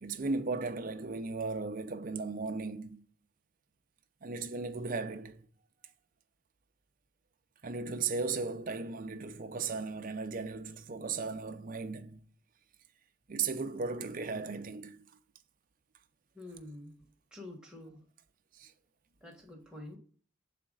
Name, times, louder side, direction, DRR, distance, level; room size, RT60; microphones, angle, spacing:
voice 1, 0.0-3.0 4.2-5.5 7.6-12.2 13.3-15.0 18.5-18.7, right 4 dB, 40° right, 0.5 m, -36 dB
voice 2, 16.3-17.0 17.3-18.0 19.2-20.0, left 1 dB, 5° right, 1.4 m, -47 dB
7.0 x 4.3 x 3.8 m
head